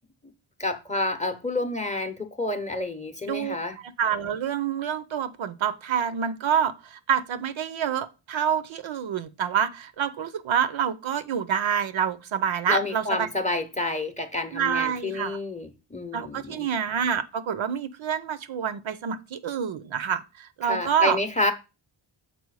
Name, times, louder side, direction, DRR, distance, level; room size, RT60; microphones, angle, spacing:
voice 1, 0.6-3.8 12.7-16.7 20.6-21.5, left 2 dB, 15° left, 0.7 m, -29 dB
voice 2, 3.8-13.3 14.5-15.4 16.1-21.2, right 8 dB, 75° right, 0.7 m, -27 dB
6.9 x 4.4 x 4.7 m
wide cardioid pair, 170°, 48 cm